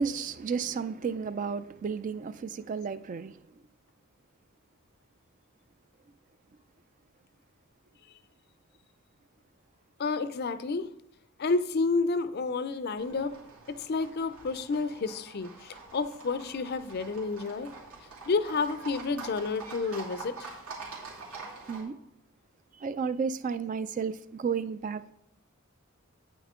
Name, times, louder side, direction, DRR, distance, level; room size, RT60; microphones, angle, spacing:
voice 1, 0.0-3.4 21.7-22.0 22.8-25.1, right 5 dB, 35° right, 0.3 m, -32 dB
voice 2, 10.0-10.9 11.4-13.4 13.7-17.7 18.3-20.5, left 4 dB, 45° left, 0.5 m, -30 dB
Livestock farm animals working animals, 13.0-21.8, right 4 dB, 85° right, 2.7 m, -45 dB
9.1 x 8.7 x 3.7 m
head